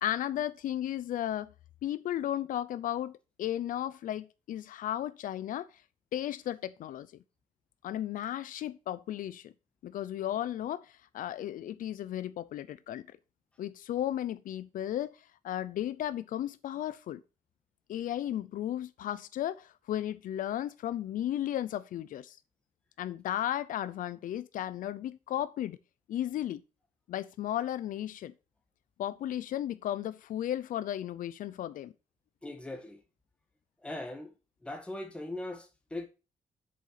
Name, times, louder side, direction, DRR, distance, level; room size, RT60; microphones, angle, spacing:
voice 1, 0.0-1.5 1.8-5.8 6.1-7.1 7.8-9.5 9.8-13.1 13.6-17.2 17.9-22.4 23.0-25.8 26.1-26.6 27.1-28.3 29.0-31.9, left 12 dB, 80° left, 0.6 m, -34 dB
voice 2, 32.4-33.0 33.8-34.3 34.6-36.1, left 2 dB, 10° left, 1.7 m, -40 dB
7.7 x 6.7 x 5.8 m
wide cardioid pair, 170°, 14 cm